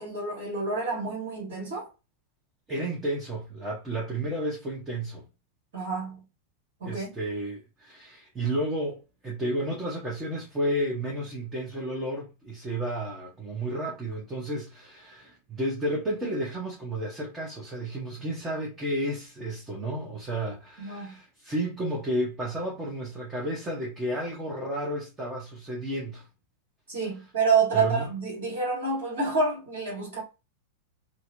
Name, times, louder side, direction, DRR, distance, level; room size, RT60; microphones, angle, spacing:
voice 1, 0.0-1.9 5.7-6.2 6.8-7.1 20.8-21.2 26.9-30.2, right 4 dB, 55° right, 1.5 m, -28 dB
voice 2, 2.7-5.2 6.8-9.0 9.2-26.3 27.7-28.1, right 1 dB, 15° right, 0.9 m, -32 dB
2.7 x 2.1 x 2.5 m
figure-of-eight pair, 90°, 0 cm